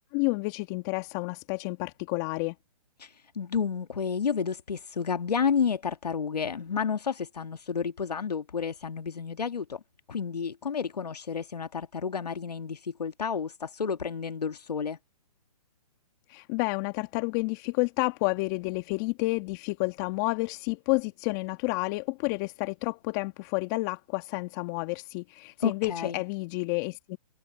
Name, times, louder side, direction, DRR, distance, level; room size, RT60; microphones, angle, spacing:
voice 1, 0.1-2.5 16.3-27.2, left 26 dB, 30° left, 1.3 m, -30 dB
voice 2, 3.0-9.8 10.1-15.0 25.6-26.2, left 6 dB, 80° left, 1.6 m, -31 dB
hypercardioid pair, 140°, 20 cm